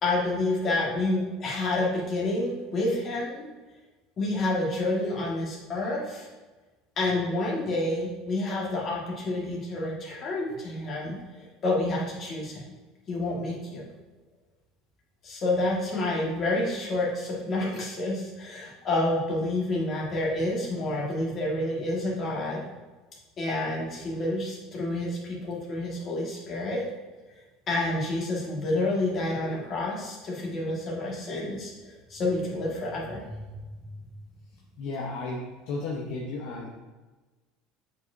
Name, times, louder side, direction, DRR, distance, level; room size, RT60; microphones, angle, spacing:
voice 1, 0.0-3.5 4.2-6.3 7.0-12.6 13.1-13.8 15.2-22.6 23.4-26.9 27.7-31.7 32.1-33.6, left 2 dB, 30° left, -4 dB, 2.0 m, -29 dB
voice 2, 34.8-36.7, left 3 dB, 65° left, -3 dB, 1.1 m, -34 dB
7.5 x 4.9 x 2.8 m, 1.2 s
cardioid pair, 145°, 0 cm